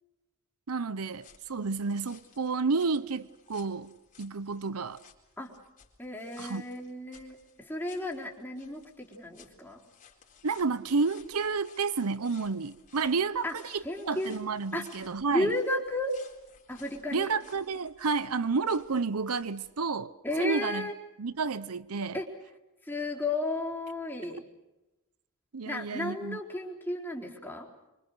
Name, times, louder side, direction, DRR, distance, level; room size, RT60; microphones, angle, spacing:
voice 1, 0.7-3.9 4.2-5.0 6.4-6.6 10.4-15.5 17.1-20.1 20.4-20.9 21.2-22.2 25.5-26.4, right 4 dB, 75° right, 0.8 m, -30 dB
sound 1, 1.1-19.8, left 7 dB, 40° left, 4.1 m, -58 dB
voice 2, 6.0-9.8 13.4-13.5 13.8-14.4 14.7-14.9 15.3-16.2 16.7-17.3 20.2-21.0 22.1-22.3 22.8-24.4 25.7-27.7, left 1 dB, 10° left, 4.1 m, -33 dB
26.0 x 25.0 x 6.6 m
head